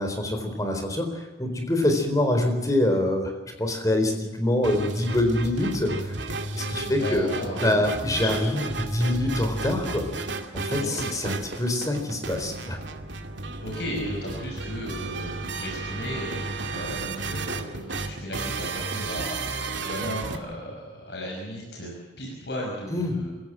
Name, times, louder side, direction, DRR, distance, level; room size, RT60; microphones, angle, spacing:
voice 1, 0.0-3.3 3.6-6.1 6.5-7.3 7.5-10.1 10.5-12.8 22.9-23.1, left 1 dB, 20° left, 4 dB, 4.1 m, -25 dB
sound 1, 4.6-20.4, right 3 dB, 90° right, 2.4 m, -33 dB
voice 2, 6.9-7.8 8.1-8.5 10.8-11.1 13.6-23.4, equal, 65° left, -1 dB, 6.0 m, -35 dB
26.5 x 16.0 x 7.6 m, 1.3 s
head